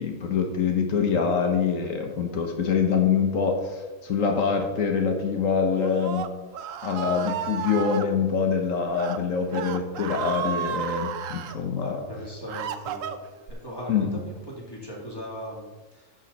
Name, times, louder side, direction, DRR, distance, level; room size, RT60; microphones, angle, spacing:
voice 1, 0.0-6.2 6.8-12.0 13.9-14.2, left 6 dB, 80° left, 3 dB, 1.4 m, -25 dB
Screaming, 5.7-8.1 8.8-9.2 9.5-11.6 12.1-13.5, right 8 dB, 80° right, 1.0 m, -33 dB
voice 2, 11.8-13.1 13.5-16.1, equal, 20° left, -3 dB, 2.5 m, -39 dB
11.5 x 6.9 x 4.1 m, 1.2 s
omnidirectional pair, 1.4 m